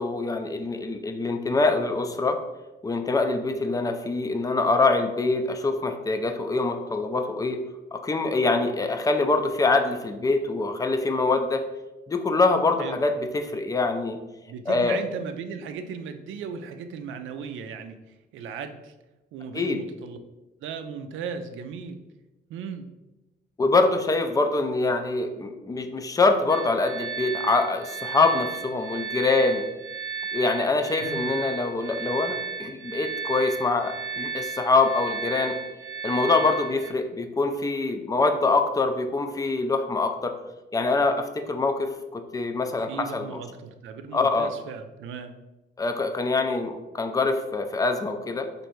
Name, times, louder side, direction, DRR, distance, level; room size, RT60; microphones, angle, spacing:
voice 1, 0.0-2.4 2.8-7.6 7.9-11.7 12.1-14.2 14.7-15.0 19.5-19.8 23.6-29.7 30.3-35.6 36.0-40.3 40.7-43.4 44.1-44.5 45.8-48.5, left 3 dB, 20° left, 6 dB, 0.4 m, -24 dB
voice 2, 14.5-18.0 18.3-18.9 19.3-20.2 20.6-22.0 22.5-22.9 31.0-31.3 42.9-45.4, right 6 dB, 80° right, 8 dB, 0.4 m, -36 dB
sound 1, 26.5-36.9, right 7 dB, 25° right, 0.8 m, -34 dB
3.1 x 2.6 x 4.4 m, 1.1 s
cardioid pair, 90°, 20 cm